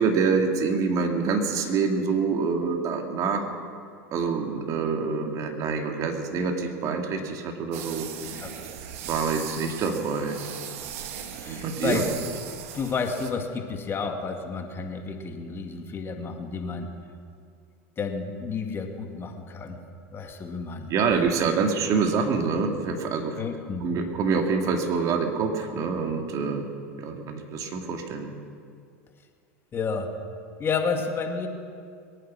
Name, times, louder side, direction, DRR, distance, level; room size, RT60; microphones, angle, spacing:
voice 1, 0.0-3.5 4.1-8.1 8.3-8.4 9.1-10.4 11.5-12.1 20.9-23.4 23.8-26.7 27.0-28.3, right 5 dB, 45° right, 4 dB, 2.2 m, -26 dB
sound 1, 7.7-13.3, right 9 dB, 70° right, 1.4 m, -38 dB
voice 2, 11.4-12.0 12.7-16.9 18.0-19.8 20.1-20.9 23.4-23.8 29.7-30.1 30.6-31.5, left 5 dB, 30° left, 4 dB, 2.0 m, -31 dB
22.0 x 9.4 x 6.2 m, 2.2 s
hypercardioid pair, 95°, 8 cm